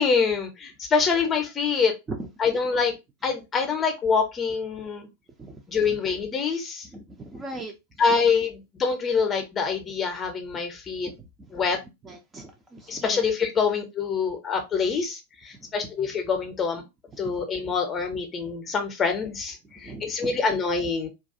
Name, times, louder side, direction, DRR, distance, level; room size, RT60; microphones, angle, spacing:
voice 1, 0.0-1.9 2.4-2.9 3.2-5.1 5.7-6.9 8.0-11.1 11.5-11.8 12.9-16.8 17.2-21.1, left 5 dB, 25° left, 0.7 m, -25 dB
voice 2, 2.1-2.6 5.4-6.0 6.8-7.7 11.0-11.3 11.7-11.8 12.0-13.2 15.6-15.7 17.1-17.4 19.8-20.3, right 2 dB, 15° right, 0.5 m, -39 dB
2.3 x 2.3 x 2.6 m
figure-of-eight pair, 90°, 0 cm